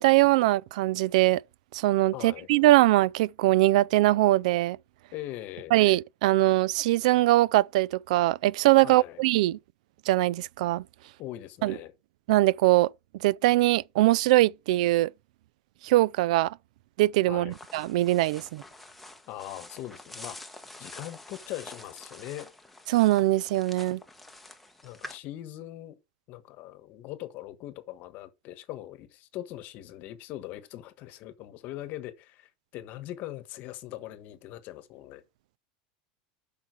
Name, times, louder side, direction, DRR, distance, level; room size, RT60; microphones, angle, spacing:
voice 1, 0.0-1.4 1.7-4.8 5.7-9.6 10.1-10.8 11.6-11.8 12.3-12.9 13.2-15.1 15.8-16.6 17.0-18.6 22.9-24.0, right 17 dB, 75° right, 0.4 m, -22 dB
voice 2, 2.1-2.5 5.1-5.7 8.8-9.2 11.2-11.9 17.3-17.5 19.3-20.4 20.8-22.5 24.8-25.9 26.3-35.2, left 14 dB, 45° left, 1.2 m, -41 dB
sound 1, 17.5-25.2, left 1 dB, ahead, 1.0 m, -47 dB
8.2 x 5.8 x 4.6 m
supercardioid pair, 150°, 4 cm